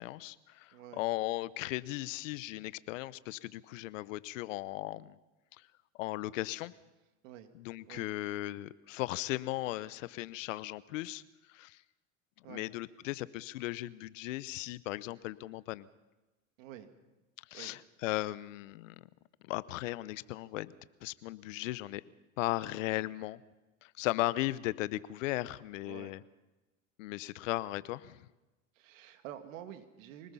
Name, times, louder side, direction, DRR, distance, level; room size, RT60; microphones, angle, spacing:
voice 1, 0.0-5.2 5.6-5.7 6.0-6.7 7.5-11.2 11.5-11.8 12.5-15.9 17.5-19.1 19.4-20.7 21.0-22.0 22.4-23.4 23.8-26.2 27.0-28.3, left 17 dB, 65° left, 18 dB, 1.0 m, -37 dB
voice 2, 0.7-1.1 7.2-7.5 7.9-8.1 12.4-12.7 16.6-16.9 17.5-17.8 25.8-26.1 28.7-30.3, right 11 dB, 65° right, 7 dB, 2.3 m, -48 dB
25.0 x 19.0 x 5.7 m, 1.1 s
hypercardioid pair, 95°, 41 cm